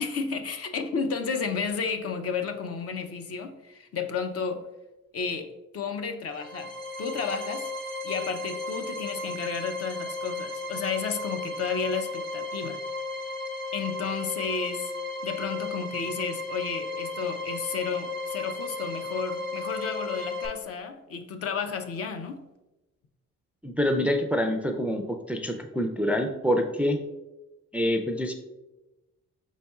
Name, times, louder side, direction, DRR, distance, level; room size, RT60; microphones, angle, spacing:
voice 1, 0.0-4.7 5.1-6.7 7.0-7.7 8.0-12.8 13.7-14.9 15.2-22.4, left 5 dB, 50° left, 7 dB, 0.6 m, -32 dB
sound 1, 6.3-20.5, left 2 dB, 30° left, 1.1 m, -35 dB
voice 2, 23.6-27.0 27.7-28.3, equal, 5° right, 4 dB, 0.3 m, -26 dB
5.2 x 4.1 x 2.3 m, 1.0 s
cardioid pair, 90°, 30 cm